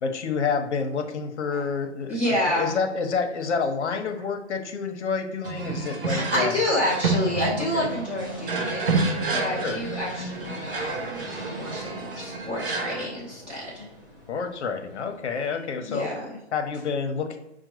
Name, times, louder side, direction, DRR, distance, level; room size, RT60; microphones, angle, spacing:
voice 1, 0.0-2.2 2.5-6.5 7.7-7.9 9.6-9.8 14.3-16.1 16.5-17.4, left 5 dB, 70° left, 6 dB, 0.8 m, -28 dB
voice 2, 2.1-2.7 6.0-13.9 15.8-16.4, left 1 dB, 5° right, -11 dB, 0.8 m, -29 dB
sound 1, 5.4-13.1, right 3 dB, 50° right, 0.7 m, -29 dB
sound 2, 7.8-15.8, left 1 dB, 20° right, 0.3 m, -44 dB
5.6 x 2.2 x 3.0 m, 0.85 s
hypercardioid pair, 160°, 35 cm